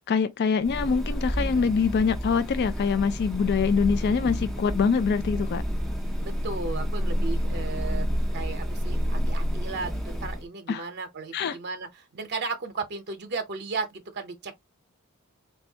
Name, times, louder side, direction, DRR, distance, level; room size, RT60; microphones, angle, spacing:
voice 1, 0.1-5.6 10.7-10.8 11.3-11.6, left 5 dB, 45° left, 0.3 m, -24 dB
sound 1, 0.6-10.5, equal, ahead, 0.6 m, -29 dB
voice 2, 6.2-8.1 8.3-14.5, right 4 dB, 50° right, 0.7 m, -35 dB
4.2 x 2.3 x 2.7 m
head